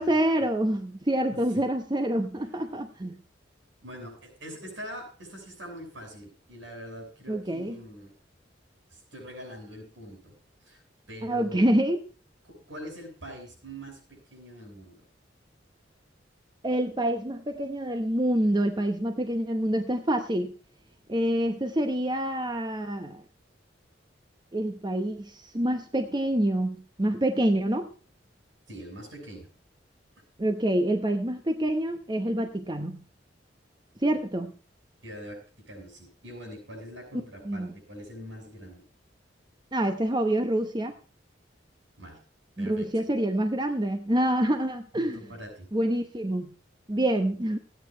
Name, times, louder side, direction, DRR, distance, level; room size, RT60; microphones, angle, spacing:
voice 1, 0.0-3.2 7.3-7.8 11.2-12.0 16.6-20.5 21.1-23.2 24.5-27.9 30.4-33.0 34.0-34.5 37.4-37.7 39.7-40.9 42.6-45.2 45.7-46.5 46.9-47.6, right 1 dB, 25° right, 5 dB, 0.9 m, -26 dB
voice 2, 1.3-1.6 3.8-8.1 8.9-10.3 10.7-10.8 11.1-11.7 12.4-15.0 28.7-29.5 35.0-38.8 42.0-42.2 42.6-42.9 44.9-45.7, equal, 80° right, 2 dB, 6.8 m, -43 dB
15.0 x 9.1 x 4.4 m, 0.37 s
head